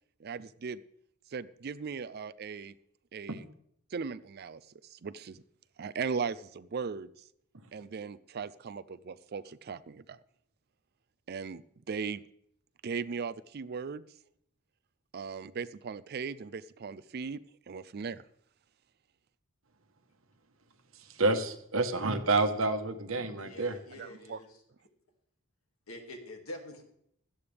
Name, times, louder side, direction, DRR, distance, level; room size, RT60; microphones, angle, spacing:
voice 1, 0.2-0.8 1.3-2.7 3.1-3.5 3.9-5.4 5.8-7.1 7.7-10.2 11.3-12.2 12.8-14.0 15.1-17.4 17.7-18.2 24.0-24.4, right 5 dB, 45° right, 15 dB, 0.4 m, -38 dB
voice 2, 21.2-23.8, right 2 dB, 65° right, 8 dB, 1.3 m, -28 dB
voice 3, 23.4-24.5 25.9-26.8, left 1 dB, 75° left, 3 dB, 2.4 m, -45 dB
16.5 x 12.5 x 3.4 m, 0.71 s
head